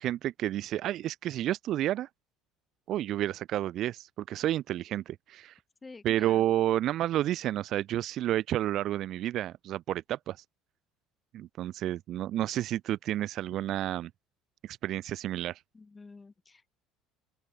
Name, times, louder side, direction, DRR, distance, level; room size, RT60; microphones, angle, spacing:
voice 1, 0.0-2.1 2.9-5.6 6.0-10.4 11.3-14.1 14.6-15.6, right 13 dB, 45° right, 0.6 m, -30 dB
voice 2, 5.8-6.4 15.7-16.7, left 4 dB, 15° left, 2.0 m, -49 dB
open air
cardioid pair, 160°, 0 cm